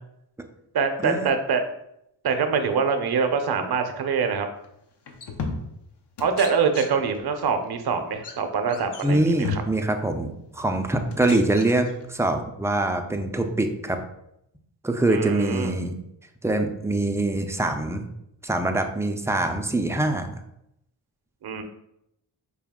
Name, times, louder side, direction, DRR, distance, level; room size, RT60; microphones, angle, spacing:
voice 1, 0.7-1.6 2.2-4.5 6.2-9.6 15.1-15.7 21.4-21.6, right 5 dB, 55° right, 6 dB, 0.6 m, -24 dB
sound 1, 4.6-4.8 5.1-5.9 6.2-7.2 7.5-7.7 8.1-8.3 8.7-9.9 10.6-10.7 11.1-12.4, left 4 dB, 60° left, 0.7 m, -35 dB
voice 2, 9.0-14.0 14.8-15.9 16.4-18.1 18.4-20.4, right 2 dB, 5° right, 5 dB, 0.3 m, -24 dB
4.8 x 2.3 x 3.5 m, 0.80 s
wide cardioid pair, 80°, 47 cm